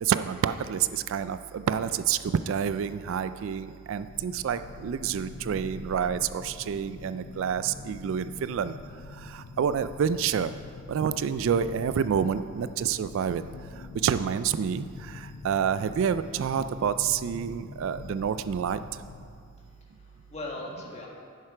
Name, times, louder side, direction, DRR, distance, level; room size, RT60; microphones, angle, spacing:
voice 1, 0.0-8.7 9.3-10.5 10.9-13.4 14.0-18.8, right 7 dB, 60° right, 12 dB, 0.3 m, -28 dB
sound 1, 4.0-19.3, left 3 dB, 80° left, 0.7 m, -45 dB
voice 2, 19.6-21.1, left 2 dB, 30° left, -2 dB, 1.6 m, -40 dB
10.5 x 7.7 x 4.9 m, 2.3 s
head